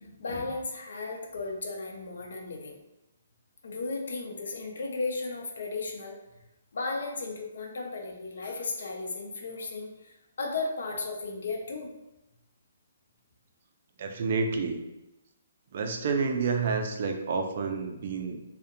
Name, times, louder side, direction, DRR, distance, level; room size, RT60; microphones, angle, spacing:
voice 1, 0.0-2.8 3.6-6.2 6.7-11.9, left 3 dB, 70° left, 1 dB, 0.5 m, -35 dB
voice 2, 14.0-14.8 15.7-18.4, right 4 dB, 45° right, 4 dB, 0.3 m, -29 dB
2.6 x 2.1 x 2.5 m, 0.92 s
hypercardioid pair, 170°, 0 cm